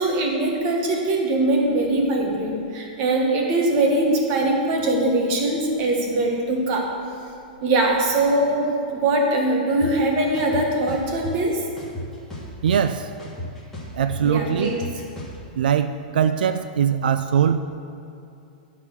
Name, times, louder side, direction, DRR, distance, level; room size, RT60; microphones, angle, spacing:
voice 1, 0.0-6.9 7.6-11.6 14.2-14.8, right 2 dB, 30° right, 0 dB, 1.3 m, -22 dB
sound 1, 9.8-9.9 10.3-11.3 11.8-12.9 13.2-15.4, left 1 dB, 5° left, 1.5 m, -34 dB
voice 2, 12.6-13.1 13.9-14.8 15.6-17.6, right 8 dB, 90° right, 10 dB, 0.3 m, -21 dB
11.0 x 4.1 x 6.8 m, 2.7 s
supercardioid pair, 170°, 5 cm